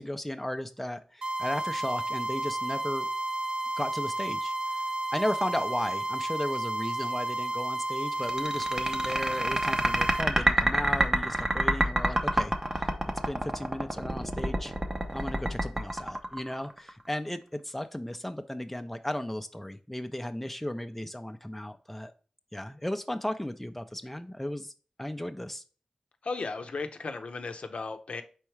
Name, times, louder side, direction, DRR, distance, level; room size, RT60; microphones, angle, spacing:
voice 1, 0.0-3.1 3.8-4.5 5.1-12.9 13.3-14.7 15.1-22.1 22.5-24.7 25.0-25.6, left 1 dB, 10° left, 8 dB, 0.5 m, -35 dB
sound 1, 1.2-10.2, right 2 dB, 75° right, 0.6 m, -32 dB
sound 2, 8.2-16.9, right 1 dB, 30° right, 0.8 m, -27 dB
voice 2, 26.2-28.2, left 4 dB, 75° left, 7 dB, 0.6 m, -35 dB
4.5 x 3.6 x 3.1 m, 0.39 s
cardioid pair, 50°, 2 cm